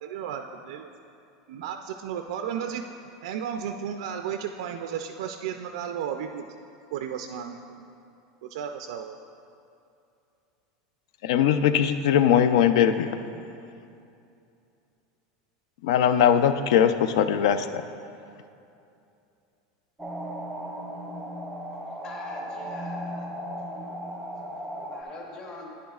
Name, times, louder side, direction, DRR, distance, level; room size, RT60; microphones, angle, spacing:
voice 1, 0.0-0.9 1.5-2.8 3.2-6.5 6.9-7.8 8.4-9.2, right 8 dB, 75° right, 6 dB, 0.4 m, -34 dB
voice 2, 11.2-13.1 15.8-17.8, left 9 dB, 70° left, 11 dB, 0.4 m, -20 dB
sound 1, 20.0-25.0, equal, 5° right, 0.5 m, -36 dB
voice 3, 22.0-23.3 24.9-25.7, left 2 dB, 25° left, -1 dB, 0.9 m, -42 dB
10.0 x 9.9 x 2.4 m, 2.6 s
supercardioid pair, 170°, 3 cm